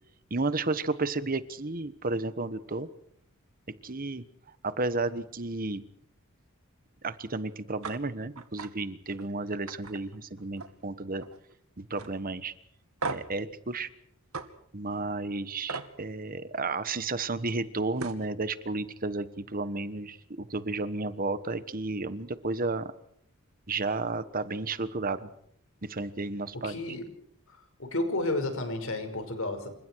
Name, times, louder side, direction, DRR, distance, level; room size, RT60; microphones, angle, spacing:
voice 1, 0.3-2.9 3.8-4.2 4.6-5.8 7.0-11.2 11.8-12.5 13.1-13.9 14.7-22.9 23.7-25.3 25.8-26.8, right 3 dB, 40° right, 13 dB, 1.3 m, -32 dB
sound 1, 7.8-8.0 8.4-8.7 9.1-9.3 9.7-10.8 11.1-11.5 12.0-12.1 13.0-13.4 14.3-14.5 15.7-15.9 17.6-17.7 18.0-18.3, right 4 dB, 80° right, 2.4 m, -37 dB
voice 2, 26.6-27.1 27.8-29.7, left 2 dB, 65° left, 7 dB, 5.7 m, -31 dB
29.0 x 26.0 x 4.8 m, 0.68 s
head